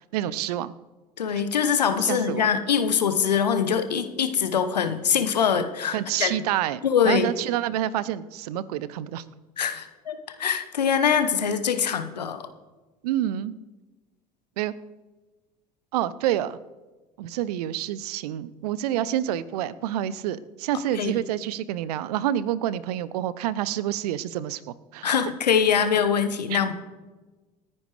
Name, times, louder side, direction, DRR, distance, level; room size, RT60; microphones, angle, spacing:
voice 1, 0.1-0.7 2.0-2.5 5.9-9.2 13.0-13.5 14.6-14.7 15.9-16.6 17.2-24.6 24.9-25.2 26.5-26.6, right 12 dB, 70° right, 18 dB, 0.6 m, -28 dB
voice 2, 1.2-6.3 6.8-7.3 9.6-12.5 21.0-21.1 25.0-26.7, left 7 dB, 85° left, 9 dB, 1.0 m, -23 dB
27.0 x 9.8 x 3.3 m, 1.2 s
figure-of-eight pair, 65°, 21 cm